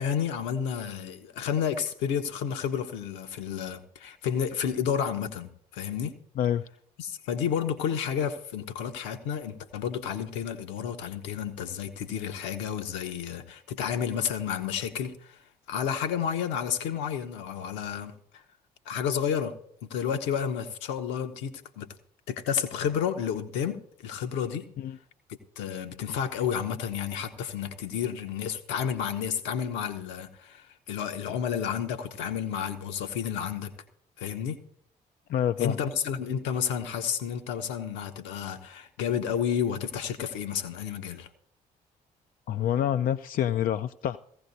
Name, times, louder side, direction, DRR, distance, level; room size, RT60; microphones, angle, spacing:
voice 1, 0.0-6.2 7.0-18.1 18.9-19.5 19.8-21.9 22.3-24.7 25.3-33.7 34.2-34.6 35.6-41.3, left 8 dB, 65° left, 1.0 m, -31 dB
voice 2, 35.3-35.8 42.5-44.2, left 10 dB, 45° left, 0.4 m, -27 dB
17.5 x 15.5 x 2.7 m
figure-of-eight pair, 45°, 21 cm